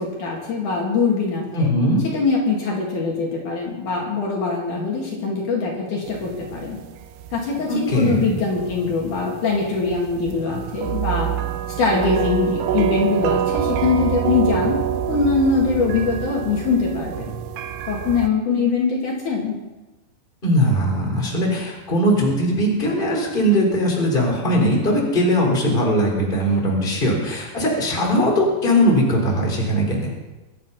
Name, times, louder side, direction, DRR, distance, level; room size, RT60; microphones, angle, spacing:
voice 1, 0.0-1.7 2.1-6.8 7.3-11.3 11.8-14.8 15.1-17.3 17.9-19.6, left 4 dB, 60° left, -2 dB, 3.7 m, -22 dB
voice 2, 1.5-2.0 7.7-8.2 20.4-30.1, equal, 15° left, -1 dB, 3.8 m, -20 dB
sound 1, 6.1-18.3, right 10 dB, 75° right, 2.4 m, -27 dB
24.5 x 9.4 x 5.6 m, 1.1 s
omnidirectional pair, 4.3 m